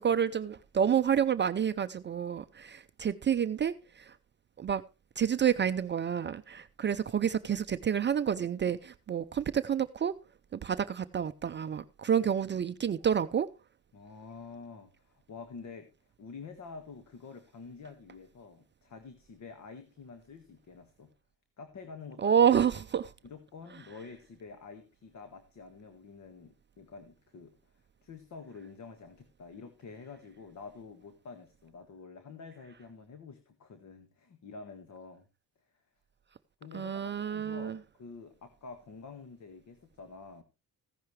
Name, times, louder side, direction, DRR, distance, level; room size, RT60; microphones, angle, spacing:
voice 1, 0.0-4.1 4.6-4.8 5.2-10.1 10.6-13.5 22.2-23.1 36.7-37.8, right 8 dB, 30° right, 0.5 m, -29 dB
voice 2, 13.9-15.9 16.2-21.1 21.6-22.4 23.2-35.3 36.6-40.4, left 4 dB, 50° left, 1.7 m, -48 dB
15.0 x 10.5 x 3.2 m
cardioid pair, 130°, 35 cm